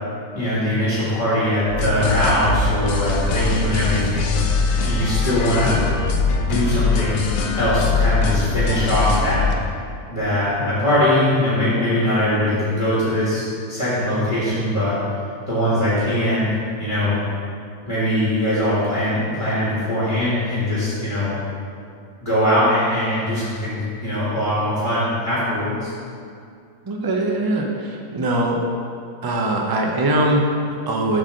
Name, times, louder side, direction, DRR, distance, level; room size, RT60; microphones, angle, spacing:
voice 1, 0.3-4.4 4.8-5.8 6.4-7.2 7.5-9.5 10.1-15.0 15.5-16.5 16.8-17.2 17.9-21.3 22.2-25.9, left 1 dB, 20° left, -9 dB, 1.9 m, -21 dB
sound 1, 1.7-9.5, left 3 dB, 70° left, 1.1 m, -21 dB
voice 2, 26.9-28.6 29.2-31.2, right 1 dB, 35° right, 0 dB, 0.3 m, -21 dB
7.8 x 4.1 x 6.4 m, 2.3 s
omnidirectional pair, 1.7 m